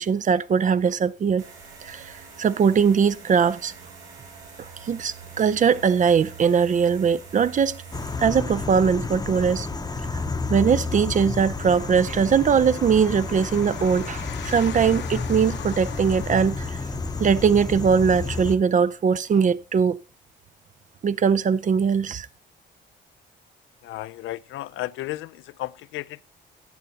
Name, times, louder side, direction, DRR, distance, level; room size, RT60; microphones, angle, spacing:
voice 1, 0.0-1.4 1.8-3.7 4.8-7.8 8.2-9.7 10.5-16.8 17.2-20.0 21.0-22.3, right 6 dB, 40° right, 0.5 m, -21 dB
sound 1, 1.4-17.5, right 6 dB, 90° right, 5.1 m, -46 dB
sound 2, 7.9-18.6, left 4 dB, 20° left, 0.8 m, -31 dB
sound 3, 11.6-18.5, left 9 dB, 60° left, 0.9 m, -42 dB
voice 2, 23.8-26.2, left 16 dB, 75° left, 0.4 m, -34 dB
14.0 x 8.9 x 2.8 m
cardioid pair, 90°, 20 cm